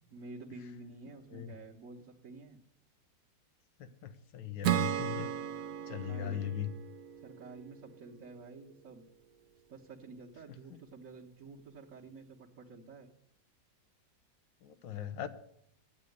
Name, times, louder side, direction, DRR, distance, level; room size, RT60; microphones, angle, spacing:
voice 1, 0.1-2.6 5.2-5.3 5.9-6.5 7.2-9.0 9.7-13.1, right 3 dB, 50° right, -4 dB, 1.5 m, -50 dB
voice 2, 3.8-5.3 5.9-6.7 10.7-10.8 14.6-15.3, left 10 dB, 85° left, 11 dB, 1.6 m, -39 dB
Acoustic guitar / Strum, 4.6-8.1, right 11 dB, 65° right, 0.9 m, -35 dB
9.8 x 8.3 x 9.3 m, 0.74 s
omnidirectional pair, 1.9 m